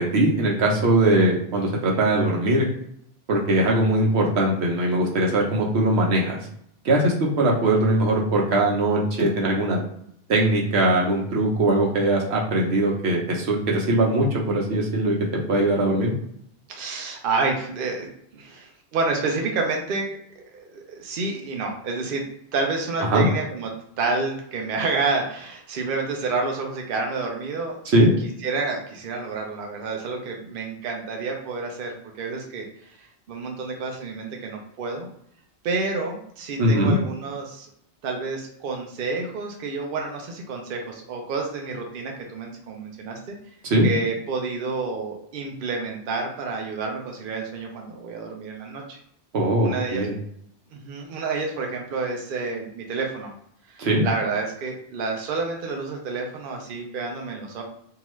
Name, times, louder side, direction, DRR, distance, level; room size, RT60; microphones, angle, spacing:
voice 1, 0.0-2.7 3.3-6.4 6.8-9.8 10.3-16.1 23.1-23.3 27.9-28.1 36.6-37.0 43.6-43.9 49.3-50.1 53.8-54.1, right 1 dB, 85° right, -1 dB, 1.0 m, -21 dB
voice 2, 16.7-18.1 18.3-20.1 20.4-22.2 22.5-23.7 24.0-27.8 28.4-32.7 33.3-35.1 35.6-37.7 38.0-43.4 43.8-49.0 49.6-50.0 50.7-53.3 53.7-57.6, right 3 dB, 60° right, 1 dB, 0.8 m, -29 dB
2.8 x 2.3 x 3.0 m, 0.69 s
omnidirectional pair, 1.1 m